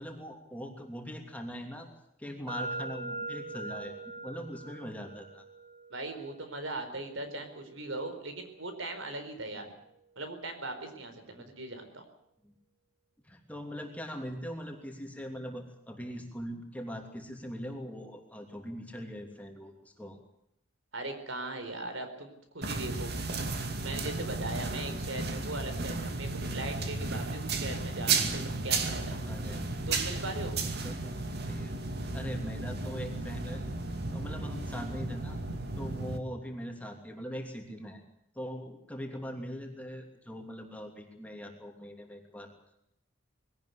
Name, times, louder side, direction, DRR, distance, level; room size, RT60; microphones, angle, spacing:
voice 1, 0.0-1.9 2.2-3.9 4.2-5.4 9.6-9.7 11.4-11.5 12.4-12.5 13.2-20.2 25.8-26.0 29.3-29.7 30.8-31.7 32.1-33.7 34.1-35.4 35.7-38.0 38.3-42.5, equal, 5° left, 2 dB, 2.9 m, -41 dB
sound 1, 2.5-10.3, right 2 dB, 30° right, 5.2 m, -44 dB
voice 2, 5.9-9.7 10.2-12.0 20.9-23.1 23.5-29.2 29.9-30.6, right 2 dB, 65° right, 7 dB, 4.5 m, -39 dB
sound 2, 22.6-36.2, right 3 dB, 50° right, 2.4 m, -34 dB
21.5 x 18.0 x 8.5 m, 0.77 s
head